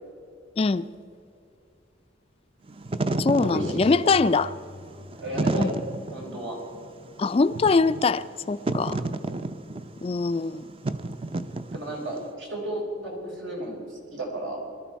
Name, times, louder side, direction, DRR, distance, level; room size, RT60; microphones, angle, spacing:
voice 1, 0.6-0.9 3.2-4.5 5.6-5.8 7.2-9.0 10.0-10.7, left 4 dB, 30° left, 14 dB, 0.3 m, -23 dB
Wind / Fire, 2.7-12.2, right 2 dB, 30° right, 0.5 m, -31 dB
voice 2, 3.4-4.2 5.2-5.7 6.1-6.6 8.9-9.2 11.7-14.6, right 1 dB, 80° right, -1 dB, 4.4 m, -34 dB
sound 1, 3.5-6.2, left 2 dB, 45° right, 1.0 m, -45 dB
21.5 x 13.0 x 4.6 m, 2.7 s
head